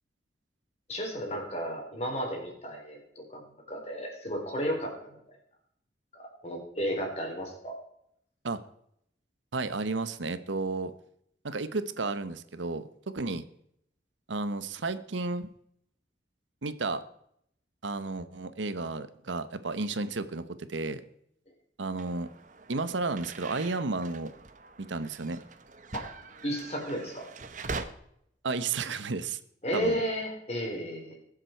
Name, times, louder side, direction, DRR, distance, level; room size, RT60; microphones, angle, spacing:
voice 1, 0.9-3.4 3.7-5.1 6.2-7.8 25.9-26.0 26.4-27.3 29.6-31.2, equal, 35° left, 1 dB, 3.9 m, -33 dB
voice 2, 9.5-10.9 11.4-13.4 14.3-15.5 16.6-17.0 17.8-21.0 21.8-22.3 22.7-24.3 24.8-25.4 28.4-29.4 29.7-30.0, right 3 dB, 85° right, 13 dB, 0.9 m, -32 dB
sound 1, 22.0-27.8, right 4 dB, 45° right, 1.0 m, -43 dB
21.0 x 7.5 x 4.5 m, 0.73 s
head